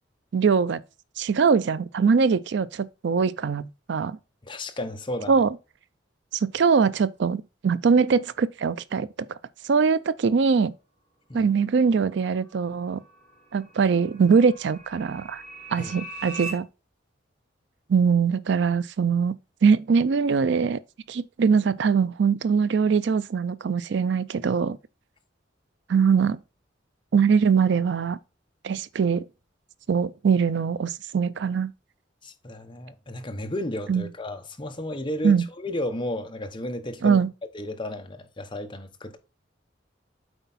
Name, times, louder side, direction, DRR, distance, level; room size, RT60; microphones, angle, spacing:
voice 1, 0.3-0.8 1.2-4.2 5.3-5.5 6.3-9.1 9.7-10.7 11.3-13.0 13.5-15.4 15.7-16.7 17.9-19.3 19.6-20.8 21.1-24.8 25.9-26.4 27.1-28.2 28.6-29.3 29.9-31.7 33.9-34.1 35.2-35.4 37.0-37.3, right 5 dB, 65° right, 0.4 m, -22 dB
voice 2, 4.4-5.4 11.3-11.5 15.8-15.9 32.2-37.2 37.5-39.2, left 1 dB, 25° left, 0.9 m, -33 dB
sound 1, 12.3-16.5, right 3 dB, 40° right, 1.8 m, -41 dB
7.9 x 4.6 x 4.1 m
head